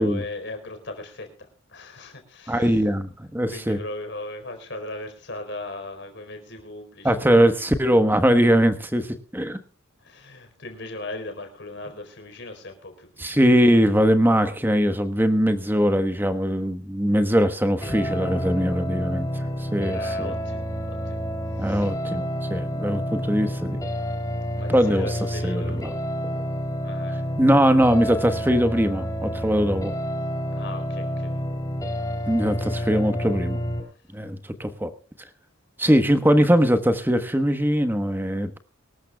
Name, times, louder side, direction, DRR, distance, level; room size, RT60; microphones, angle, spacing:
voice 1, 0.0-2.8 3.5-7.1 10.0-13.8 19.9-21.2 21.5-21.9 24.6-26.0 26.8-27.3 30.5-31.4 33.3-33.4 33.8-34.0, left 2 dB, 60° left, 6 dB, 4.3 m, -38 dB
voice 2, 2.5-3.8 7.0-9.1 9.3-9.6 13.2-20.3 21.6-23.8 24.7-25.1 25.4-25.9 27.4-29.9 32.3-33.6 34.1-34.9 35.8-38.6, equal, 10° right, 9 dB, 1.2 m, -21 dB
sound 1, 17.8-33.8, equal, 15° left, 3.4 m, -29 dB
24.5 x 13.5 x 2.3 m, 0.36 s
head